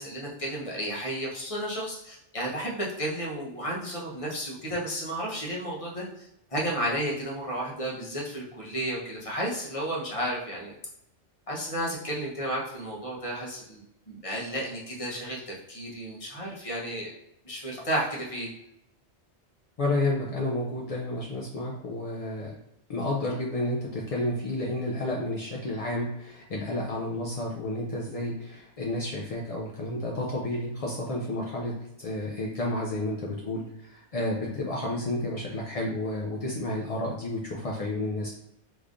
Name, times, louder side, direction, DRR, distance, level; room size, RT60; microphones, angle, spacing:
voice 1, 0.0-10.7 11.5-17.1 17.4-18.5, equal, 30° left, -4 dB, 0.9 m, -32 dB
voice 2, 19.8-22.6 22.9-38.3, left 1 dB, 60° left, -2 dB, 0.4 m, -31 dB
3.6 x 3.1 x 2.5 m, 0.80 s
omnidirectional pair, 1.2 m